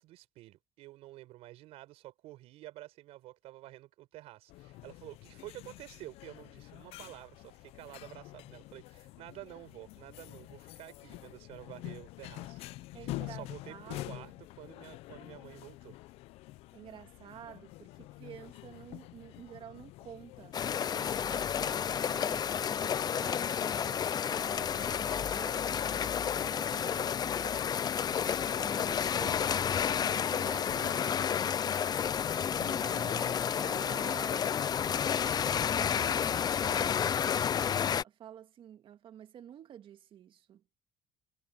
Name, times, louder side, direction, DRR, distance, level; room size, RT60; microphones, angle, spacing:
voice 1, 0.0-15.9 28.1-28.4, right 16 dB, 75° right, 6.7 m, -50 dB
sound 1, 4.5-21.7, left 18 dB, 75° left, 0.6 m, -47 dB
voice 2, 12.9-14.3 16.7-20.6 21.0-27.7 28.5-29.6 30.0-31.3 32.6-34.6 35.7-37.2 37.9-40.6, right 10 dB, 55° right, 2.1 m, -50 dB
sound 2, 20.5-38.0, left 8 dB, 40° left, 0.6 m, -31 dB
supercardioid pair, 80°, 10 cm